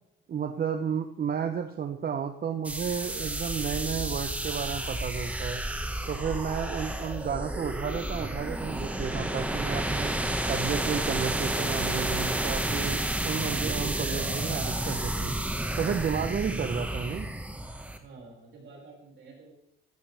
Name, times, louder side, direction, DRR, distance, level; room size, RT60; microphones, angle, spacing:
voice 1, 0.3-5.6 6.1-10.1 10.5-15.3 15.8-17.3, right 7 dB, 45° right, 7 dB, 0.9 m, -32 dB
sound 1, 2.6-18.0, right 1 dB, 5° right, 1.7 m, -31 dB
voice 2, 18.0-19.5, right 3 dB, 65° right, -2 dB, 5.9 m, -49 dB
14.5 x 14.0 x 3.5 m, 0.83 s
cardioid pair, 90°, 21 cm